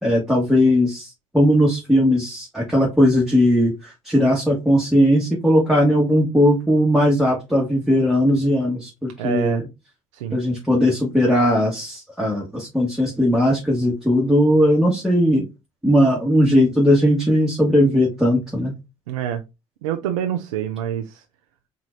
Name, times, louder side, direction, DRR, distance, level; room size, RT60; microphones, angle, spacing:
voice 1, 0.0-9.6 10.3-15.4 15.8-18.7, equal, ahead, 1.7 m, -18 dB
voice 2, 9.2-9.6 10.1-10.4 19.1-19.4 19.8-21.1, right 10 dB, 80° right, 0.4 m, -26 dB
4.2 x 3.6 x 2.7 m
hypercardioid pair, 50°, 17 cm